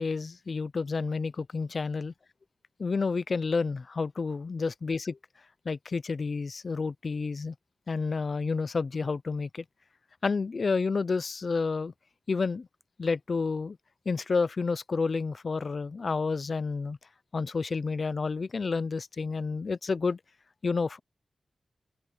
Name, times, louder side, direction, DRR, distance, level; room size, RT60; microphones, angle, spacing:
voice 1, 0.0-2.1 2.8-5.2 5.6-7.5 7.9-9.6 10.2-11.9 12.3-12.7 13.0-13.8 14.1-17.0 17.3-20.2 20.6-21.0, left 4 dB, 50° left, 0.5 m, -30 dB
wide cardioid pair, 85°, 0 cm